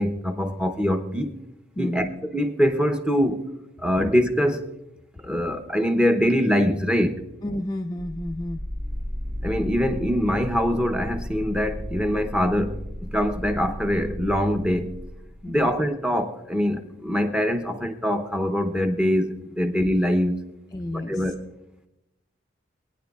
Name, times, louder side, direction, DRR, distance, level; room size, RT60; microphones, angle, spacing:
voice 1, 0.0-1.3 1.8-3.5 3.8-4.7 5.2-7.2 9.4-15.0 15.4-20.4 20.9-21.4, equal, 5° right, 0.7 m, -23 dB
voice 2, 1.8-2.1 7.4-8.6 15.4-15.7 20.7-21.3, left 1 dB, 20° left, 0.4 m, -31 dB
sound 1, 8.0-15.8, equal, 30° right, 3.5 m, -35 dB
23.5 x 9.7 x 2.4 m
head